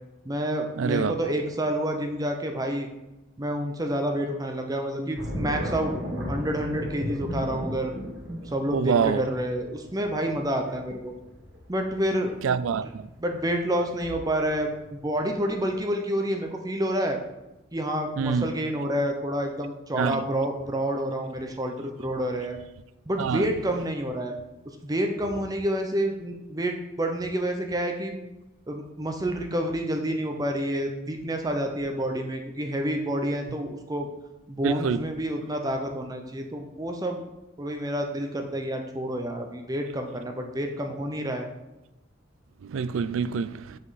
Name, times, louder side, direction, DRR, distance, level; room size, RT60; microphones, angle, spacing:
voice 1, 0.2-2.9 3.4-5.9 6.3-7.9 8.5-11.1 11.7-12.3 12.8-12.9 13.2-17.2 17.7-22.6 23.1-24.4 24.7-28.2 28.7-34.1 34.5-37.2 37.6-41.5, equal, 20° right, 0.6 m, -28 dB
voice 2, 0.8-1.1 8.7-9.3 12.4-12.9 18.2-18.5 20.0-20.2 23.2-23.4 34.6-35.0 42.6-43.8, right 6 dB, 80° right, 0.3 m, -25 dB
sound 1, 5.1-14.8 15.2-15.7, equal, 60° right, 1.8 m, -35 dB
7.9 x 5.0 x 4.1 m
head